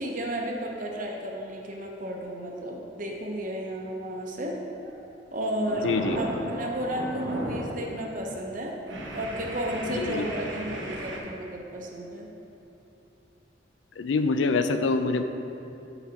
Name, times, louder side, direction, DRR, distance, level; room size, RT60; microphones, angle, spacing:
voice 1, 0.0-4.6 5.3-8.7 9.1-12.3, right 1 dB, 45° right, 0 dB, 0.9 m, -33 dB
sound 1, 4.7-5.1 5.4-7.8 8.2-8.4 8.8-11.2, right 1 dB, 80° right, 1.1 m, -34 dB
voice 2, 5.8-6.2 9.9-10.2 14.0-15.2, left 3 dB, 80° left, 9 dB, 0.4 m, -25 dB
8.4 x 4.1 x 5.8 m, 2.9 s
head